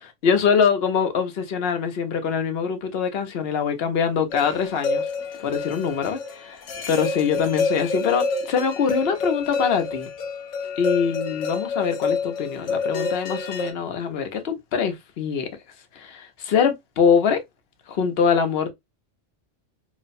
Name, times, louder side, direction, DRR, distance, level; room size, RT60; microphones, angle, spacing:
voice 1, 0.2-5.1 5.4-6.6 6.9-10.1 10.8-15.5 15.9-17.4 17.9-18.7, left 6 dB, 60° left, 0.8 m, -23 dB
sound 1, 4.3-13.7, left 4 dB, 90° left, 1.0 m, -28 dB
3.1 x 2.0 x 2.5 m
omnidirectional pair, 1.2 m